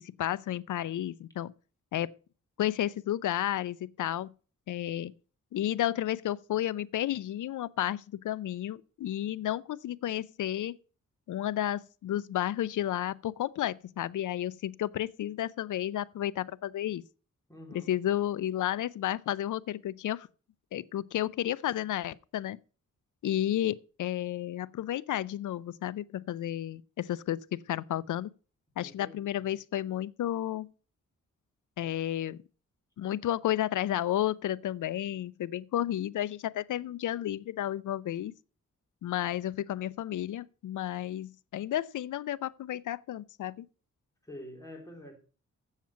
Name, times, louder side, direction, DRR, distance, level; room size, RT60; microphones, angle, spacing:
voice 1, 0.0-1.5 1.9-2.1 2.6-4.3 4.7-5.1 5.5-10.8 11.3-17.0 17.9-20.3 20.7-22.6 23.2-28.3 28.8-30.7 31.8-32.4 33.0-38.3 39.0-43.7, left 12 dB, 75° left, 0.5 m, -32 dB
voice 2, 17.5-17.9 28.8-29.5 44.2-45.2, left 1 dB, 10° left, 3.5 m, -47 dB
7.4 x 7.3 x 5.7 m
cardioid pair, 70°, 31 cm